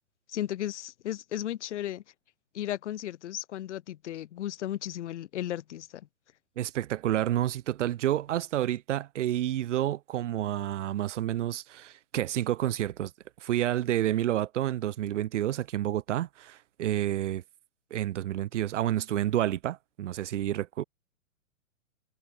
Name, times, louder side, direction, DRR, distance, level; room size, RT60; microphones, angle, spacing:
voice 1, 0.3-2.0 2.5-6.1, left 12 dB, 55° left, 3.2 m, -35 dB
voice 2, 6.6-13.1 13.4-17.4 17.9-20.8, right 12 dB, 60° right, 0.7 m, -29 dB
figure-of-eight pair, 120°, 42 cm